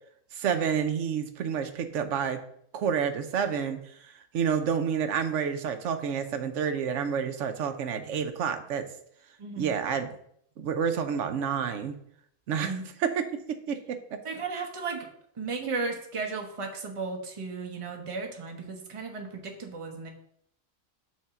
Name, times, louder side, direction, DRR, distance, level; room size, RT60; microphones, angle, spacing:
voice 1, 0.3-2.4 2.7-8.9 9.6-10.1 10.6-12.0 12.5-14.2 15.6-15.7, right 7 dB, 70° right, 8 dB, 1.0 m, -29 dB
voice 2, 9.4-9.7 12.6-12.8 14.2-15.1 15.4-20.1, right 4 dB, 25° right, 2 dB, 0.9 m, -35 dB
6.1 x 3.7 x 5.8 m, 0.69 s
omnidirectional pair, 1.4 m